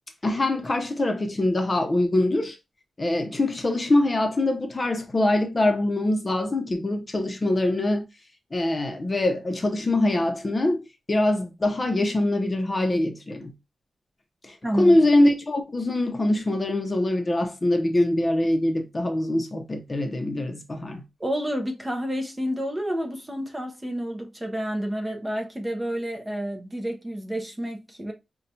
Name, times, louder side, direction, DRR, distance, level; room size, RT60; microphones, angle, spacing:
voice 1, 0.2-2.6 3.0-8.0 8.5-13.5 14.4-21.0, left 1 dB, 25° left, 0.7 m, -23 dB
voice 2, 14.6-15.1 21.2-28.1, equal, 15° right, 0.6 m, -29 dB
5.4 x 2.3 x 2.7 m
wide cardioid pair, 145°, 0 cm